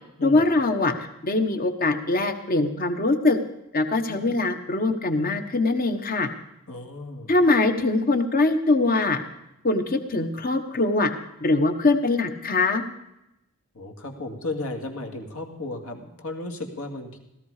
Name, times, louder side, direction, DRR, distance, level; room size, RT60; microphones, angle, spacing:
voice 1, 0.2-0.9 1.2-3.4 3.7-6.3 7.3-9.2 9.6-11.1 11.4-12.8, left 2 dB, 40° left, 7 dB, 1.3 m, -22 dB
voice 2, 6.7-7.3 13.7-17.2, left 2 dB, 65° left, 3 dB, 2.3 m, -34 dB
17.0 x 14.0 x 5.0 m, 0.87 s
head